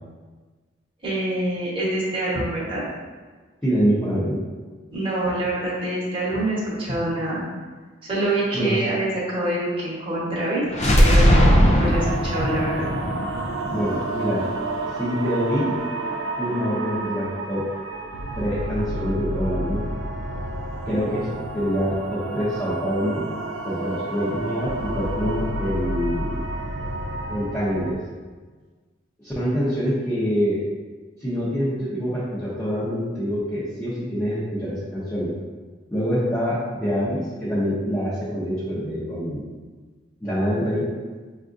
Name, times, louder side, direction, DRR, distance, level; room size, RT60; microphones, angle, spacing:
voice 1, 1.0-2.8 4.9-7.4 8.0-10.6 11.0-12.9, right 1 dB, 25° right, -8 dB, 1.1 m, -25 dB
voice 2, 3.6-4.4 8.5-8.8 13.7-14.5 14.9-15.8 16.4-17.7 18.3-19.9 20.9-23.3 23.6-26.4 27.3-28.0 29.2-30.6 31.2-35.3 35.9-39.5 40.2-40.9, equal, 10° left, -12 dB, 0.8 m, -25 dB
sound 1, 10.7-14.6, equal, 35° left, 0.4 m, -19 dB
sound 2, 11.8-28.0, right 2 dB, 70° right, 0.4 m, -30 dB
5.6 x 2.4 x 2.5 m, 1.4 s
head